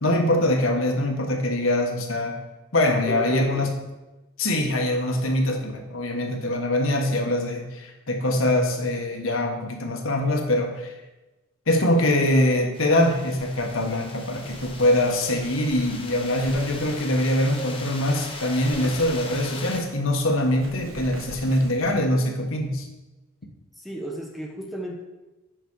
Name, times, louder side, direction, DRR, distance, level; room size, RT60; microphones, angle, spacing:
voice 1, 0.0-2.4 2.7-3.7 4.4-10.9 11.7-22.9, left 1 dB, 70° left, 2 dB, 1.4 m, -23 dB
voice 2, 3.1-3.7 23.8-25.0, equal, ahead, 1 dB, 0.7 m, -33 dB
sound 1, 12.7-19.8, left 3 dB, 25° left, 1.0 m, -39 dB
Wind, 13.3-22.0, right 2 dB, 80° right, 1.2 m, -44 dB
8.0 x 6.1 x 4.7 m, 1.1 s
head